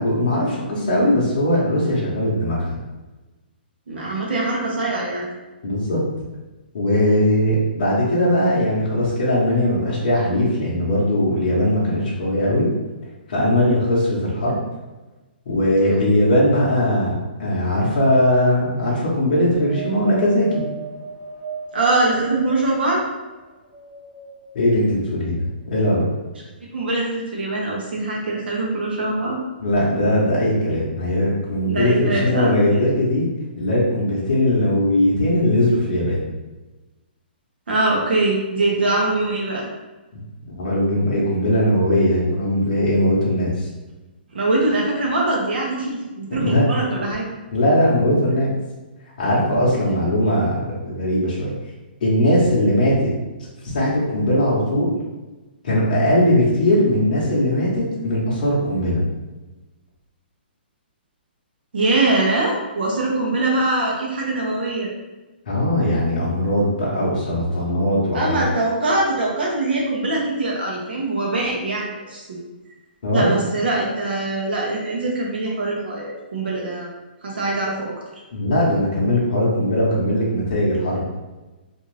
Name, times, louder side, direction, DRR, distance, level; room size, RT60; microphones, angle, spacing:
voice 1, 0.0-2.7 5.6-6.0 6.7-12.7 13.3-14.6 15.5-20.6 24.5-26.0 29.6-33.2 33.6-36.2 40.5-43.7 46.3-46.6 47.5-48.5 49.2-51.5 52.0-53.1 53.6-54.9 55.6-59.0 65.5-68.4 73.0-73.4 78.3-81.0, left 1 dB, 45° left, -7 dB, 0.8 m, -19 dB
voice 2, 3.9-5.3 15.8-16.2 21.7-23.0 26.7-29.4 31.7-32.8 37.7-39.7 44.3-47.3 61.7-64.9 68.1-72.4 73.1-76.9 77.2-77.9, right 2 dB, 70° right, -3 dB, 0.8 m, -23 dB
Wind, 19.5-23.1 23.6-24.7 25.4-25.5, right 4 dB, 15° right, 0.4 m, -35 dB
2.6 x 2.4 x 3.2 m, 1.2 s
hypercardioid pair, 175°, 6 cm